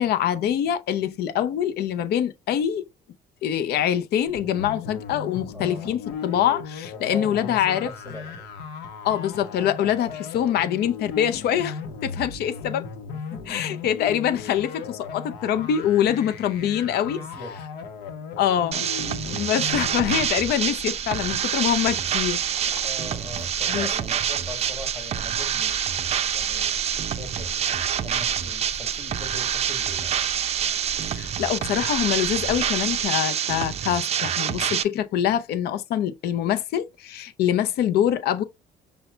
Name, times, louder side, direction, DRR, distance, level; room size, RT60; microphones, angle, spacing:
voice 1, 0.0-2.9 3.4-7.9 9.0-12.9 13.5-17.2 18.4-18.8 19.2-22.4 22.7-22.8 23.7-23.9 31.0-38.4, left 10 dB, 70° left, 0.6 m, -24 dB
sound 1, 4.3-20.3, left 5 dB, 90° left, 0.9 m, -36 dB
voice 2, 5.5-6.0 6.9-8.4 13.1-13.8 16.6-17.6 22.8-26.8 27.2-30.3, left 2 dB, 15° left, 1.7 m, -41 dB
sound 2, 18.7-34.8, right 9 dB, 40° right, 0.4 m, -26 dB
sound 3, 19.7-33.1, left 1 dB, 50° left, 1.4 m, -43 dB
5.6 x 2.2 x 3.8 m
cardioid pair, 110°, 17 cm